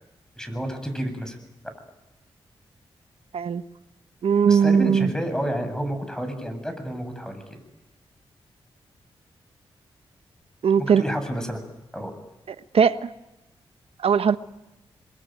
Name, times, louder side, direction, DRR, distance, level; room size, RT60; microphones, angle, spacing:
voice 1, 0.4-1.4 4.5-7.4 11.0-11.6 11.9-12.1, equal, 5° left, 8 dB, 7.9 m, -29 dB
voice 2, 4.2-5.1 10.6-11.0 12.7-13.1 14.0-14.4, right 7 dB, 70° right, 12 dB, 1.1 m, -19 dB
27.0 x 22.5 x 9.4 m, 1.0 s
cardioid pair, 50°, 10 cm